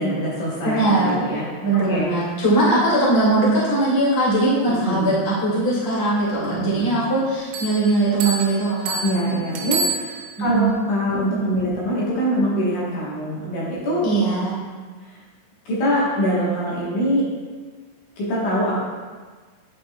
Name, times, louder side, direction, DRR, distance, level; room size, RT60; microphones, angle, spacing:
voice 1, 0.0-1.5 1.9-2.1 4.7-5.2 6.4-7.0 9.0-14.1 15.0-15.2 15.7-17.3 18.2-18.8, equal, 65° left, -7 dB, 2.1 m, -24 dB
voice 2, 0.6-1.2 1.6-9.0 10.5-10.7 11.1-11.4 14.0-14.6, right 2 dB, 85° left, -8 dB, 0.5 m, -20 dB
sound 1, 7.5-10.6, right 4 dB, 80° right, 3.0 m, -29 dB
11.5 x 5.2 x 2.3 m, 1.5 s
omnidirectional pair, 5.2 m